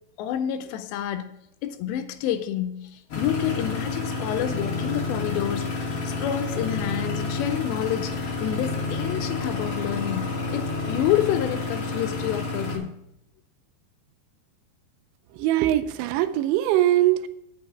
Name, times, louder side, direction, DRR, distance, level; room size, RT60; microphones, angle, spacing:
voice 1, 0.2-1.3 1.6-12.9, left 11 dB, 80° left, 2.7 m, -28 dB
sound 1, 3.1-12.8, left 3 dB, 55° left, 1.7 m, -29 dB
voice 2, 15.3-17.3, right 13 dB, 85° right, 3.0 m, -22 dB
8.5 x 6.1 x 7.6 m
omnidirectional pair, 5.2 m